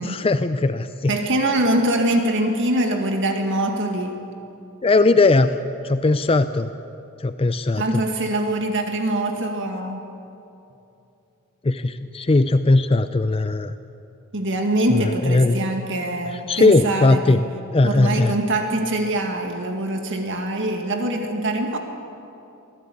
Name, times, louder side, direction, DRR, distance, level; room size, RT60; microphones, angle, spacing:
voice 1, 0.0-1.1 4.8-5.6 5.8-6.7 7.2-8.0 11.6-13.8 14.9-15.6 16.3-17.4 17.7-18.4, left 2 dB, 25° left, 10 dB, 0.5 m, -19 dB
voice 2, 1.1-4.2 7.8-10.0 14.3-17.5 17.8-21.8, right 1 dB, 55° right, 4 dB, 2.0 m, -23 dB
24.0 x 17.0 x 8.5 m, 2.8 s
head